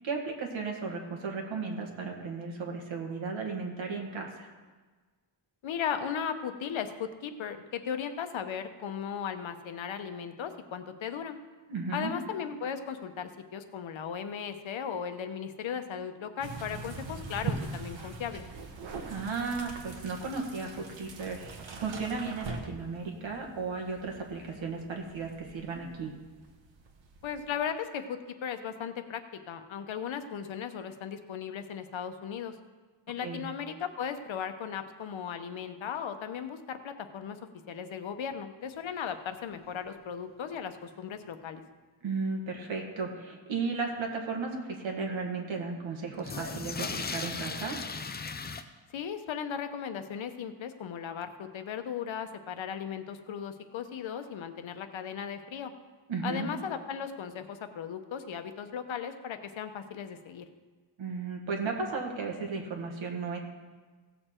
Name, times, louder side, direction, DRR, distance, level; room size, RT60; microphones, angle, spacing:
voice 1, 0.0-4.5 11.7-12.1 19.1-26.1 33.2-33.5 42.0-47.8 56.1-56.5 61.0-63.4, right 4 dB, 90° right, 1 dB, 1.8 m, -35 dB
voice 2, 5.6-11.4 11.9-18.4 27.2-32.6 33.1-37.4 37.7-41.6 48.9-55.7 56.2-60.4, left 7 dB, 85° left, 8 dB, 0.9 m, -37 dB
sound 1, 16.4-27.6, right 4 dB, 75° right, 1.3 m, -42 dB
sound 2, 39.1-39.2 39.5-39.6 39.8-39.9 40.5-40.6 46.1-48.6, left 4 dB, 25° left, 0.4 m, -37 dB
16.5 x 6.8 x 4.4 m, 1.4 s
wide cardioid pair, 175°, 45 cm